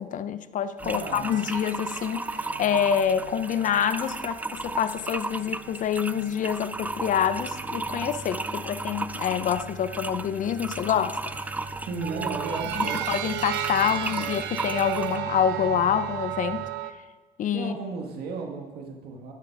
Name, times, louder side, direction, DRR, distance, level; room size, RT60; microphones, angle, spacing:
voice 1, 0.0-11.2 12.8-16.7 17.4-17.7, left 8 dB, 50° left, 12 dB, 0.6 m, -27 dB
sound 1, 0.8-15.2, right 2 dB, 10° right, 0.3 m, -35 dB
voice 2, 0.8-1.2 11.8-13.1 13.9-14.3 17.5-19.3, right 3 dB, 70° right, 1 dB, 1.6 m, -35 dB
sound 2, 1.2-6.8 7.3-8.3 9.5-10.2 11.2-16.9, right 13 dB, 90° right, 0.5 m, -36 dB
sound 3, 6.7-16.7, right 2 dB, 40° right, 1.5 m, -44 dB
13.0 x 5.8 x 4.6 m, 1.3 s
cardioid pair, 110°, 17 cm